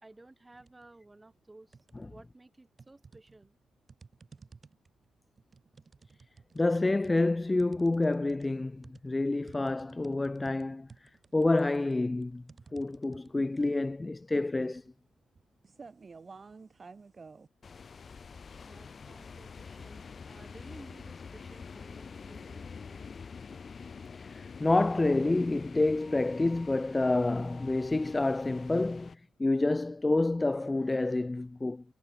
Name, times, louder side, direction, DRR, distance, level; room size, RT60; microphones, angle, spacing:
voice 1, 0.0-1.8 2.0-3.6 18.6-23.1, right 2 dB, 15° right, 2.7 m, -55 dB
sound 1, 0.5-0.9 1.3-2.2 2.8-17.5, right 4 dB, 30° right, 2.6 m, -54 dB
voice 2, 6.6-12.4 12.7-14.8 24.1-31.8, left 2 dB, 15° left, 0.4 m, -28 dB
sound 2, 17.6-29.2, left 5 dB, 40° left, 1.8 m, -46 dB
cardioid pair, 90°, 0 cm